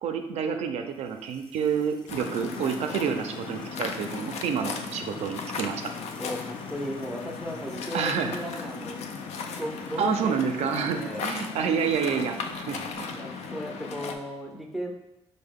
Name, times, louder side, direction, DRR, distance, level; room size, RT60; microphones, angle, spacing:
voice 1, 0.0-5.8 7.9-8.3 10.0-13.2, right 6 dB, 80° right, 5 dB, 0.4 m, -28 dB
sound 1, 0.9-13.0, left 3 dB, 45° left, 0.6 m, -52 dB
Waves surf, 2.1-14.1, left 5 dB, 80° left, 0.4 m, -36 dB
voice 2, 6.2-11.2 13.1-14.9, equal, ahead, 0 dB, 0.5 m, -36 dB
4.4 x 2.1 x 3.5 m, 0.97 s
cardioid pair, 125°, 11 cm